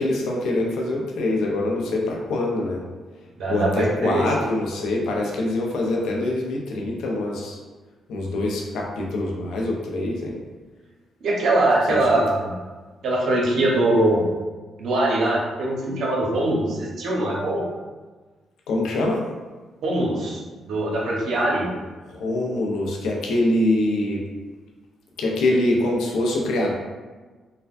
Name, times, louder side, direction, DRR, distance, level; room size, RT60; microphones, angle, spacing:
voice 1, 0.0-2.8 3.5-7.6 8.1-10.4 11.9-12.0 18.7-19.2 22.1-24.2 25.2-26.7, left 2 dB, 80° left, -1 dB, 0.5 m, -24 dB
voice 2, 3.4-4.5 11.2-12.5 13.0-14.3 14.8-17.6 19.8-21.7, right 1 dB, 70° right, -3 dB, 0.8 m, -22 dB
3.3 x 2.2 x 2.5 m, 1.3 s
supercardioid pair, 65°, 0 cm